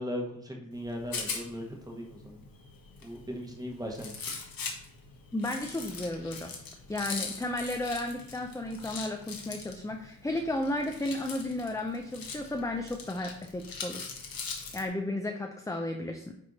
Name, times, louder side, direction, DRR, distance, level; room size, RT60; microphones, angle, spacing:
voice 1, 0.0-2.4 3.0-4.1, equal, 10° right, 1 dB, 1.3 m, -38 dB
Rattle, 0.7-14.9, left 5 dB, 60° left, 1.3 m, -42 dB
voice 2, 5.3-6.5 6.9-14.1 14.7-16.3, left 1 dB, 10° left, 3 dB, 0.4 m, -33 dB
9.7 x 3.4 x 4.0 m, 0.77 s
wide cardioid pair, 160°, 39 cm